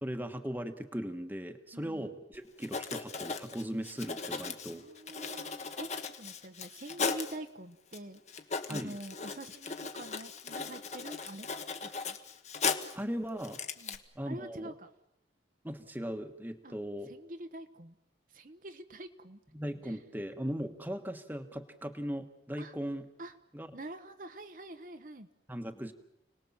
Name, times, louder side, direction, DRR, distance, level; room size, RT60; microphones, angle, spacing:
voice 1, 0.0-4.8 8.7-9.0 12.9-13.6 14.1-14.7 15.6-17.1 19.5-23.1 23.5-23.7 25.5-25.9, equal, 10° right, 7 dB, 1.4 m, -38 dB
voice 2, 1.7-2.0 4.7-11.5 11.8-12.2 13.8-14.0 14.2-14.9 16.6-16.7 17.1-18.0 18.3-19.4 19.8-20.0 22.6-22.8 23.2-23.3 23.7-25.3, right 1 dB, 45° right, 7 dB, 1.1 m, -45 dB
Writing, 2.3-2.4 2.6-7.4 7.9-8.0 8.3-13.0 13.4-14.0, left 5 dB, 40° left, 1.4 m, -37 dB
30.0 x 19.5 x 7.3 m, 0.84 s
head